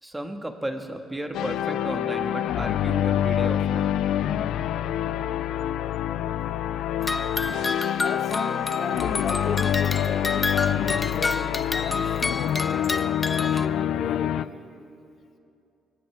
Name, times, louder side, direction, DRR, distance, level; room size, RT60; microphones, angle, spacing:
voice 1, 0.0-4.0, right 1 dB, 10° right, 5 dB, 1.5 m, -34 dB
sound 1, 1.3-14.4, left 10 dB, 85° left, 0.3 m, -26 dB
sound 2, 7.0-13.7, left 3 dB, 25° left, 0.5 m, -29 dB
voice 2, 8.0-12.2 12.7-14.5, left 5 dB, 55° left, 5 dB, 1.5 m, -35 dB
23.0 x 17.0 x 3.4 m, 2.6 s
cardioid pair, 90°, 0 cm